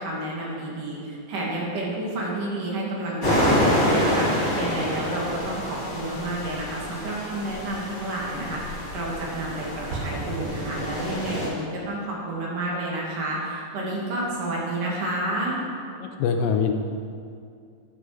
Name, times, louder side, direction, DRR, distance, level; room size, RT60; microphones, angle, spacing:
voice 1, 0.0-15.6, right 1 dB, 65° right, -4 dB, 3.6 m, -30 dB
sound 1, 3.2-11.5, equal, 35° left, 4.3 m, -27 dB
Explosion, 9.9-11.7, right 3 dB, 90° right, 0.9 m, -35 dB
voice 2, 16.0-16.7, left 6 dB, 80° left, 5 dB, 2.3 m, -23 dB
12.5 x 10.0 x 5.0 m, 2.3 s
omnidirectional pair, 4.2 m